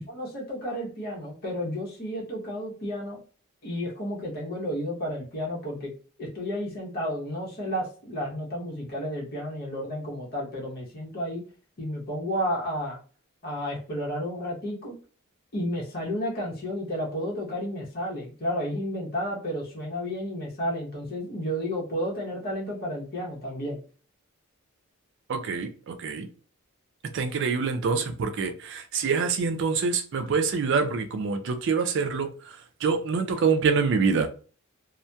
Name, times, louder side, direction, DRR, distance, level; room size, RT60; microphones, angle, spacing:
voice 1, 0.0-3.2 3.6-5.9 6.2-11.4 11.8-13.0 13.4-14.9 15.5-23.8, equal, 45° left, 0.8 m, -32 dB
voice 2, 25.3-26.3 27.1-32.3 32.8-34.3, right 5 dB, 55° right, 0.4 m, -25 dB
2.7 x 2.1 x 2.2 m
head